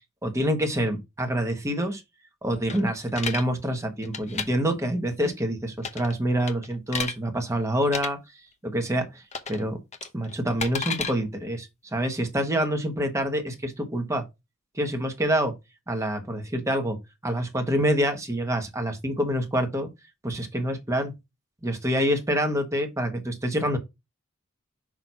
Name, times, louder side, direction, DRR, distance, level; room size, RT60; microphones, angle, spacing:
voice 1, 0.2-2.0 2.4-8.2 8.6-9.2 9.5-9.8 10.1-14.2 14.7-15.5 15.9-17.0 17.2-19.9 20.2-21.1 21.6-23.8, equal, 15° right, 1.3 m, -26 dB
sound 1, 2.7-3.4 4.0-4.5 5.8-6.1 6.5-7.1 7.8-8.1 9.3-9.6 9.9-11.1, left 5 dB, 35° left, 0.8 m, -31 dB
6.2 x 2.9 x 5.4 m
head